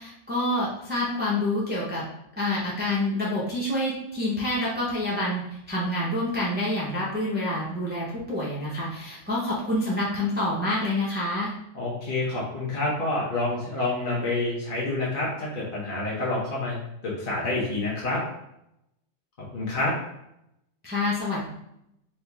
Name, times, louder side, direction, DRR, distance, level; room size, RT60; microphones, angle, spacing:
voice 1, 0.0-2.0 2.4-11.5 20.8-21.5, left 1 dB, 10° right, -7 dB, 0.7 m, -27 dB
voice 2, 11.7-16.8 17.0-18.2 19.4-19.9, left 2 dB, 45° left, -5 dB, 1.0 m, -28 dB
4.5 x 2.7 x 3.4 m, 0.81 s
omnidirectional pair, 1.3 m